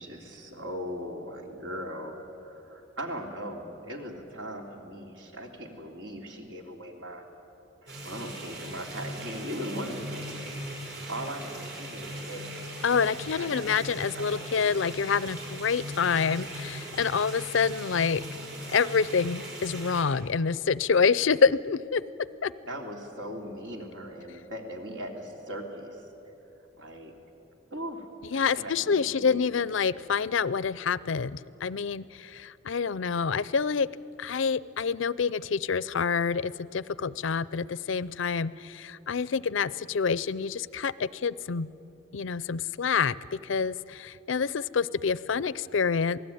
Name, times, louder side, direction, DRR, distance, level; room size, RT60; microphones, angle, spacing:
voice 1, 0.0-7.2 7.8-10.5 11.1-12.6 13.3-13.8 14.1-14.8 22.6-26.0 26.7-27.1 27.7-28.0 28.3-29.4, equal, 75° right, 2 dB, 3.2 m, -39 dB
sound 1, 7.9-20.0, right 1 dB, 55° right, 6.0 m, -39 dB
voice 2, 12.8-18.2 18.7-22.0 22.4-22.5 28.3-33.9 34.2-41.7 42.1-46.2, left 5 dB, 75° left, 19 dB, 0.5 m, -27 dB
27.5 x 18.5 x 9.3 m, 3.0 s
head